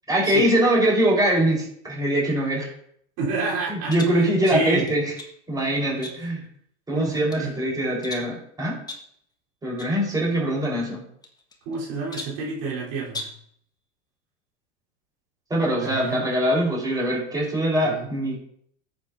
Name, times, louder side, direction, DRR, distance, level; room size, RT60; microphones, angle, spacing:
voice 1, 0.1-2.7 3.7-5.0 5.5-6.4 6.9-8.8 9.6-11.0 15.5-18.4, right 1 dB, 10° right, -3 dB, 4.1 m, -23 dB
voice 2, 3.2-4.9 6.9-7.5 11.7-13.3 15.8-16.2 17.8-18.1, right 3 dB, 55° right, -5 dB, 3.7 m, -29 dB
sound 1, 3.9-4.2 4.9-5.4 6.0-6.5 7.0-7.5 8.0-8.4 8.9-9.2 9.8-10.0 10.2-10.3 11.2-11.8 12.1-12.5 13.1-13.5, left 2 dB, 10° left, 1.4 m, -38 dB
13.5 x 8.1 x 2.6 m, 0.67 s
supercardioid pair, 120°, 34 cm